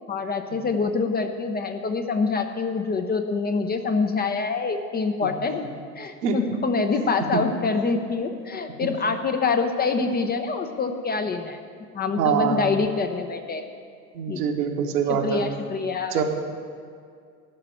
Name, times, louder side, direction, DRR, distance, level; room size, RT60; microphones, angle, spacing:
voice 1, 0.1-5.6 6.0-11.6 11.9-13.6 14.3-14.4 15.1-16.2, left 4 dB, 20° left, 6 dB, 0.7 m, -25 dB
voice 2, 12.2-12.7 14.1-15.4 16.1-16.2, right 7 dB, 70° right, 2 dB, 1.6 m, -24 dB
12.5 x 5.9 x 8.9 m, 2.2 s
figure-of-eight pair, 80°, 49 cm